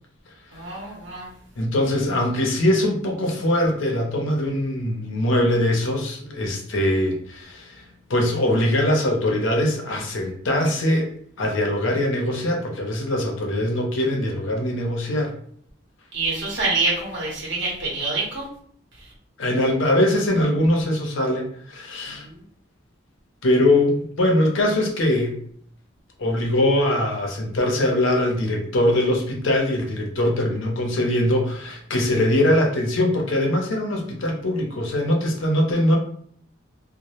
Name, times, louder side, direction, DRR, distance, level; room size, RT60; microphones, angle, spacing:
voice 1, 0.5-1.3 16.1-18.5 22.2-22.4, right 3 dB, 55° right, -4 dB, 0.9 m, -26 dB
voice 2, 1.6-11.1 11.4-15.3 19.4-22.3 23.4-25.4 26.2-36.0, left 1 dB, 75° left, 2 dB, 0.6 m, -22 dB
2.1 x 2.0 x 2.9 m, 0.62 s
head